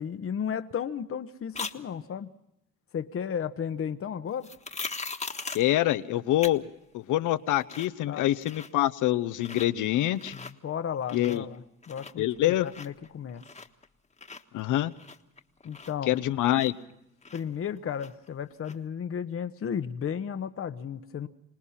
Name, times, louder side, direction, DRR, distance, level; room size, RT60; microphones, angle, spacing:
voice 1, 0.0-2.3 2.9-4.5 8.1-8.3 10.3-13.4 15.6-16.2 17.3-21.3, left 8 dB, 45° left, 9 dB, 1.0 m, -34 dB
sound 1, 1.5-1.8 4.4-5.7 6.4-6.5 6.9-7.0 7.4-8.0 8.3-8.9 9.3-9.7 10.1-10.5 10.9-11.6 11.8-13.9 14.2-16.9 17.2-18.3 18.6-18.8, left 4 dB, 20° left, 1.4 m, -40 dB
voice 2, 5.5-6.6 6.9-10.3 11.1-11.4 12.2-12.7 14.5-14.9 16.1-16.7, left 14 dB, 85° left, 12 dB, 0.9 m, -25 dB
26.5 x 19.0 x 5.7 m, 0.86 s
cardioid pair, 90°, 30 cm